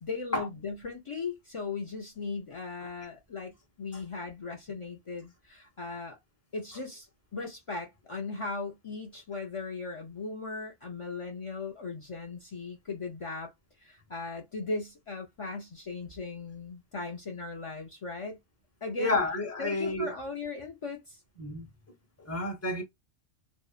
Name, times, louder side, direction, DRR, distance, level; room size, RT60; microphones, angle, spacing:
voice 1, 0.0-3.5 3.8-6.2 6.5-13.5 13.8-18.4 18.8-19.2 19.6-21.2, left 3 dB, 55° left, 0.3 m, -38 dB
voice 2, 19.0-20.2 21.4-21.7 22.2-22.8, left 2 dB, 15° left, 0.7 m, -30 dB
2.8 x 2.0 x 2.4 m
omnidirectional pair, 1.2 m